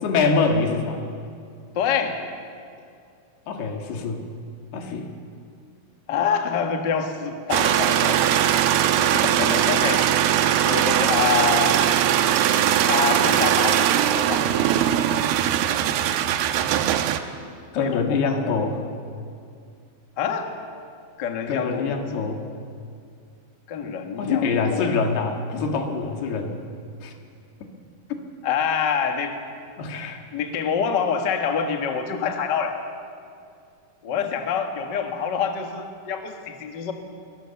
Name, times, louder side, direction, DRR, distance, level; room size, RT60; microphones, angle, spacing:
voice 1, 0.0-1.0 3.5-4.3 4.7-5.1 9.0-9.6 17.7-18.8 21.5-22.4 24.2-26.6 27.0-27.1 29.8-30.2 34.2-34.3, left 4 dB, 85° left, 3 dB, 3.9 m, -25 dB
voice 2, 1.7-2.2 6.1-8.4 9.4-10.0 10.7-11.8 12.8-14.5 17.8-18.5 20.2-20.5 21.2-21.9 23.7-24.9 28.4-29.4 29.8-29.9 30.3-32.9 34.0-36.9, left 6 dB, 50° left, 4 dB, 1.3 m, -26 dB
sound 1, 7.5-17.2, right 10 dB, 85° right, 2.8 m, -20 dB
23.0 x 19.5 x 7.1 m, 2.4 s
omnidirectional pair, 4.5 m